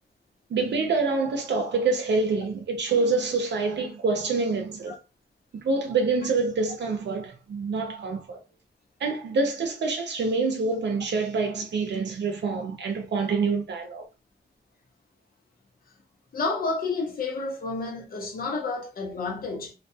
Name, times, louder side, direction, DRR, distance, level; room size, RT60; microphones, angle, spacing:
voice 1, 0.5-5.0 5.5-8.4 9.0-14.0, right 4 dB, 80° right, 0.6 m, -26 dB
voice 2, 16.3-19.7, left 3 dB, 55° left, 0.7 m, -30 dB
2.3 x 2.2 x 2.6 m
wide cardioid pair, 180°, 18 cm